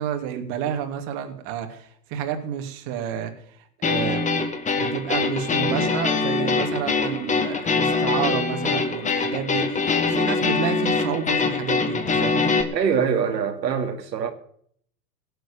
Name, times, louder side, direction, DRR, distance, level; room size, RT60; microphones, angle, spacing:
voice 1, 0.0-3.3 3.8-4.2 4.7-12.5, right 9 dB, 40° right, 2.8 m, -30 dB
sound 1, 3.8-12.6, left 4 dB, 15° left, 1.8 m, -23 dB
voice 2, 12.7-14.3, right 7 dB, 85° right, 2.4 m, -23 dB
17.5 x 7.9 x 7.0 m
hypercardioid pair, 125°, 49 cm